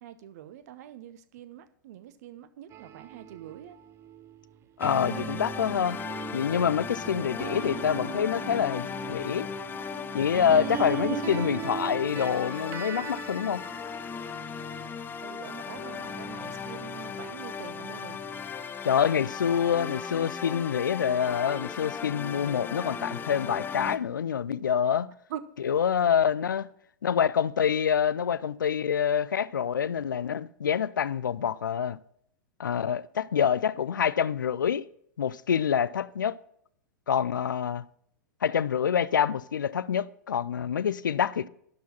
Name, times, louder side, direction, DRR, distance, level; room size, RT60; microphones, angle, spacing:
voice 1, 0.0-3.8 7.1-7.2 15.2-18.2 25.3-25.4, right 11 dB, 55° right, 0.8 m, -44 dB
sound 1, 2.7-15.2 15.7-18.6, right 8 dB, 25° right, 0.5 m, -40 dB
voice 2, 4.8-6.0 6.3-9.5 10.1-13.6 18.8-25.1 25.6-26.7 27.0-32.0 32.6-34.8 35.2-36.3 37.1-37.8 38.4-41.5, left 8 dB, 75° left, 0.4 m, -26 dB
sound 2, 4.8-24.0, left 6 dB, 20° left, 0.6 m, -37 dB
12.0 x 4.7 x 5.9 m
figure-of-eight pair, 100°, 11 cm